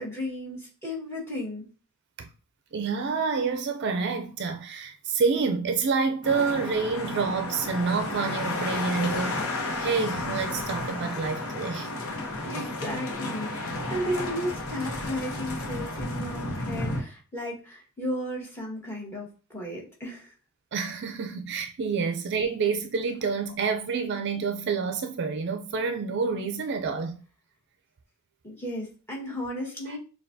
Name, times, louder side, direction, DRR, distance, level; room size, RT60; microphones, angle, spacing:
voice 1, 0.0-1.7 12.4-20.3 28.4-30.0, equal, 10° left, 1.4 m, -34 dB
voice 2, 2.7-11.9 20.7-27.2, right 5 dB, 55° right, 0.4 m, -28 dB
sound 1, 6.2-17.0, left 2 dB, 75° left, 0.9 m, -32 dB
6.5 x 2.3 x 2.6 m
head